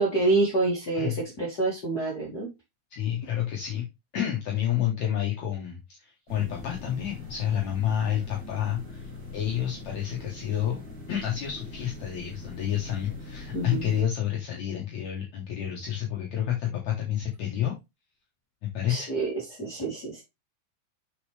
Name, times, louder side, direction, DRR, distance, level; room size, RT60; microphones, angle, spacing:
voice 1, 0.0-2.5 13.5-13.9 18.9-20.2, right 3 dB, 30° left, -5 dB, 2.5 m, -27 dB
voice 2, 2.9-3.8 4.1-10.8 11.1-17.7 18.6-19.1, left 10 dB, 60° left, 0 dB, 2.3 m, -29 dB
sound 1, 6.3-14.0, left 2 dB, 30° right, 2.5 m, -42 dB
6.8 x 6.4 x 3.3 m, 0.23 s
omnidirectional pair, 4.1 m